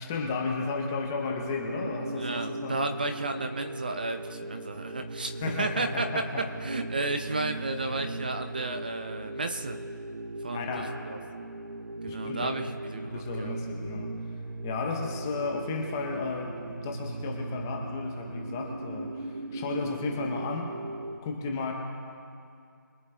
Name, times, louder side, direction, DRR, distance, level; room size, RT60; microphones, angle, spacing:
voice 1, 0.0-2.8 5.4-6.5 10.5-11.0 12.1-12.5 13.1-14.1 14.6-20.7 21.2-21.7, left 4 dB, 10° left, 1 dB, 0.7 m, -33 dB
sound 1, 1.2-21.2, right 2 dB, 70° right, 1.0 m, -38 dB
voice 2, 2.2-5.3 5.6-6.1 6.6-9.8 10.4-11.2 12.0-13.5, right 2 dB, 25° right, 7 dB, 0.5 m, -33 dB
24.0 x 10.0 x 3.3 m, 2.3 s
figure-of-eight pair, 175°, 11 cm